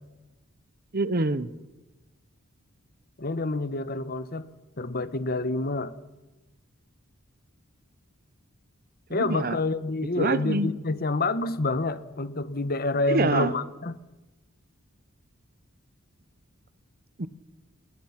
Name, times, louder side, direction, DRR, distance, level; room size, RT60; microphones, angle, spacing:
voice 1, 0.9-1.5 9.1-9.6 10.2-10.7 13.1-13.5 17.2-17.3, right 2 dB, 45° right, 0.9 m, -25 dB
voice 2, 3.2-4.5 4.8-5.9 9.1-14.0, left 2 dB, 45° left, 1.1 m, -28 dB
29.0 x 20.5 x 5.9 m
head